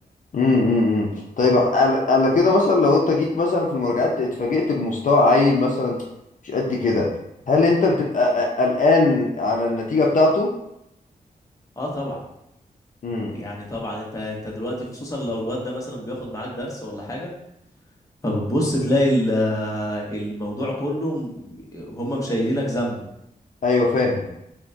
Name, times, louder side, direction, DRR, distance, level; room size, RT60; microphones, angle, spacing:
voice 1, 0.3-1.1 1.4-6.0 6.4-7.1 7.5-10.5 13.0-13.3 23.6-24.2, left 3 dB, 60° left, -1 dB, 0.6 m, -19 dB
voice 2, 11.8-12.2 13.3-17.3 18.2-23.0, equal, 20° left, -3 dB, 0.9 m, -26 dB
5.7 x 2.2 x 2.6 m, 0.81 s
wide cardioid pair, 135°, 15 cm